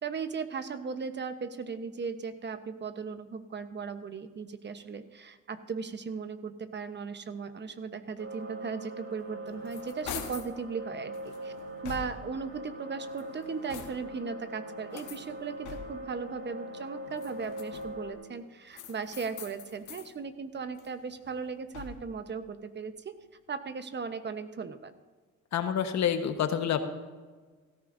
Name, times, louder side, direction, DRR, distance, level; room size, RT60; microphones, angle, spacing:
voice 1, 0.0-11.5 11.8-23.1 23.5-24.9, right 5 dB, 35° right, 10 dB, 1.0 m, -37 dB
sound 1, 8.2-18.1, right 1 dB, 55° right, 3.4 m, -42 dB
sound 2, 9.2-10.6 11.1-12.4 13.0-14.2 14.9-16.2 17.1-18.1 18.7-20.1 20.5-22.2, left 8 dB, 80° left, 1.4 m, -45 dB
voice 2, 25.5-26.8, left 8 dB, 65° left, 7 dB, 1.3 m, -28 dB
16.5 x 14.0 x 2.7 m, 1.4 s
cardioid pair, 90°, 30 cm